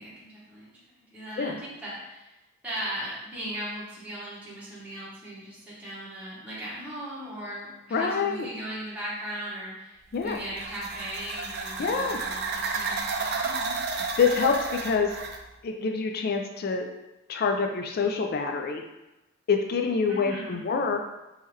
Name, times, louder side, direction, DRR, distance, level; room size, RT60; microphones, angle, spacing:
voice 1, 0.0-2.3 2.6-13.8 20.1-20.7, right 1 dB, 5° right, -9 dB, 1.1 m, -38 dB
voice 2, 7.9-8.5 10.1-10.4 11.8-12.2 14.2-14.5 14.8-15.2 15.6-16.9 17.3-18.8 19.5-21.0, left 5 dB, 50° left, 4 dB, 0.3 m, -26 dB
sound 1, 10.1-15.4, right 4 dB, 50° right, 0.4 m, -32 dB
3.6 x 3.0 x 3.1 m, 0.98 s
head